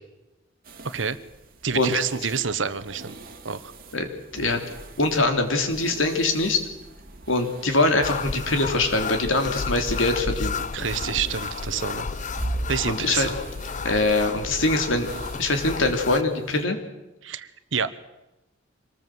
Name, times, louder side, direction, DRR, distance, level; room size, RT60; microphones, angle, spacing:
sound 1, 0.6-16.6, right 2 dB, 50° right, 2.6 m, -41 dB
voice 1, 0.8-1.2 1.6-3.1 3.4-3.7 10.7-12.2 12.7-13.3 17.2-17.9, right 6 dB, 70° right, 14 dB, 1.2 m, -28 dB
voice 2, 5.0-6.6 7.3-10.6 12.8-13.3 13.8-15.1 15.4-16.8, left 2 dB, 90° left, 5 dB, 3.4 m, -23 dB
sound 2, 8.0-16.2, left 4 dB, 40° left, 0.7 m, -32 dB
25.0 x 19.5 x 7.8 m, 0.98 s
head